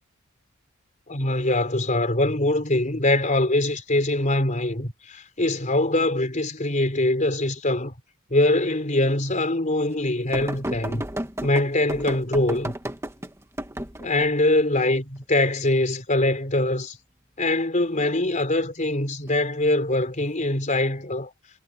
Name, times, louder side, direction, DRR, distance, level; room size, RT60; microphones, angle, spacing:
voice 1, 1.1-7.9 8.3-11.0 11.4-12.7 14.0-17.0 17.4-21.3, left 1 dB, 35° left, 4.0 m, -23 dB
sound 1, 10.3-14.3 17.8-18.1 19.3-19.4, right 1 dB, 15° right, 1.6 m, -33 dB
head